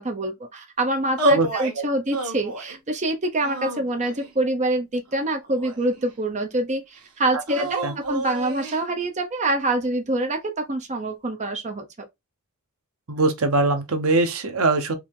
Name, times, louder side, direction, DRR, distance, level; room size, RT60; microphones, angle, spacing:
voice 1, 0.0-11.9, right 1 dB, 30° right, 0.8 m, -25 dB
sound 1, 1.2-1.8 2.1-2.8 3.4-4.3 5.1-6.1 7.5-8.8, right 1 dB, 85° right, 1.5 m, -29 dB
voice 2, 13.1-14.9, right 3 dB, 70° right, 1.0 m, -21 dB
4.8 x 2.8 x 3.7 m
head